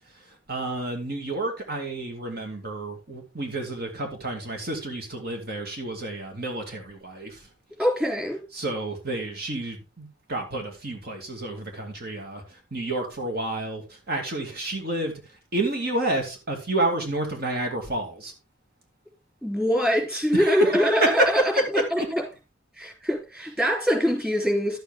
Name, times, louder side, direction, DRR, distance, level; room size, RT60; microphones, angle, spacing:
voice 1, 0.1-7.5 8.5-18.3 20.3-22.1 23.4-23.5, right 2 dB, 55° right, 2.5 m, -29 dB
voice 2, 7.8-8.4 19.4-21.4 21.9-22.2 22.8-24.8, equal, 5° right, 3.7 m, -23 dB
11.5 x 8.2 x 3.7 m
head